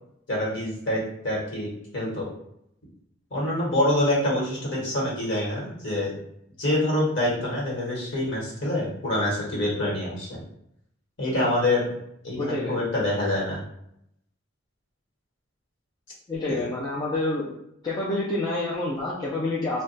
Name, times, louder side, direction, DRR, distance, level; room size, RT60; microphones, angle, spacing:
voice 1, 0.3-2.3 3.3-6.2 6.6-10.4 11.2-11.9 12.2-13.6 16.4-16.7, left 1 dB, 55° left, -5 dB, 1.2 m, -26 dB
voice 2, 12.4-12.7 16.3-17.5 17.8-19.8, left 2 dB, 20° left, -6 dB, 0.4 m, -28 dB
2.3 x 2.2 x 3.9 m, 0.76 s
head